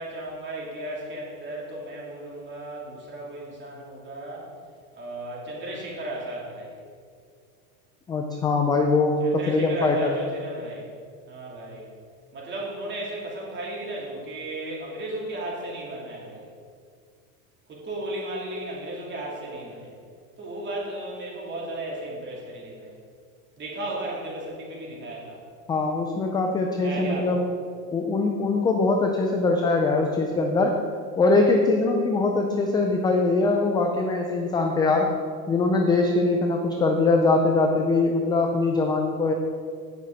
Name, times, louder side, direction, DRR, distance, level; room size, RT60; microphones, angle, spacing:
voice 1, 0.0-4.5 4.9-6.8 9.2-10.9 11.2-11.9 12.3-16.5 17.7-19.9 20.4-23.0 23.6-25.4 26.8-27.4, right 1 dB, 25° right, -4 dB, 3.1 m, -35 dB
voice 2, 8.1-10.1 25.7-27.4 27.9-30.8 31.2-35.1 35.5-39.3, left 3 dB, 10° left, 2 dB, 0.3 m, -22 dB
16.0 x 6.4 x 4.0 m, 2.2 s
supercardioid pair, 135°, 45 cm